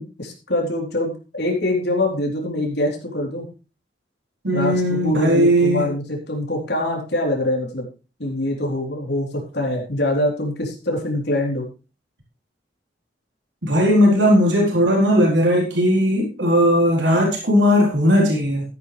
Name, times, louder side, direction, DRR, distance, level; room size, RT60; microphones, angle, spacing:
voice 1, 0.0-3.5 4.5-7.8 8.2-11.6, left 1 dB, 70° left, 0 dB, 3.9 m, -24 dB
voice 2, 4.4-5.9 13.6-18.6, equal, 85° right, -2 dB, 4.0 m, -17 dB
13.5 x 10.0 x 3.4 m, 0.33 s
head